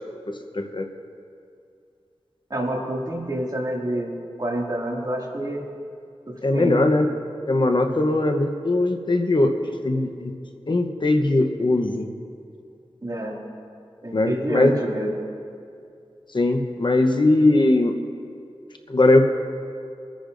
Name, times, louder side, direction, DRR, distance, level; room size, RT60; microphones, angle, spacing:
voice 1, 0.5-0.9 6.4-7.1 7.5-10.3 10.7-12.1 14.1-14.7 16.3-17.9 18.9-19.2, left 2 dB, 50° left, 5 dB, 0.9 m, -20 dB
voice 2, 2.5-4.1 4.4-5.7 6.3-6.8 13.0-13.4 14.0-15.1, right 1 dB, 40° right, -3 dB, 2.3 m, -28 dB
25.5 x 10.0 x 2.6 m, 2.4 s
wide cardioid pair, 70°, 10 cm